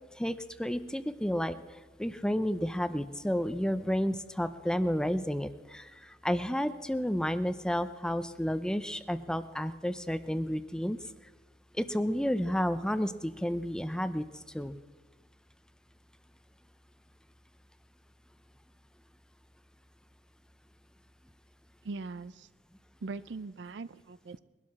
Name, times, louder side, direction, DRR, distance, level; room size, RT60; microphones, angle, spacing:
voice 1, 0.2-1.6 2.0-11.0 11.8-14.3 14.5-14.7, equal, 5° left, 12 dB, 0.5 m, -31 dB
voice 2, 21.8-22.5 23.0-24.4, right 3 dB, 70° right, 16 dB, 0.5 m, -40 dB
21.5 x 12.5 x 4.2 m, 1.2 s
head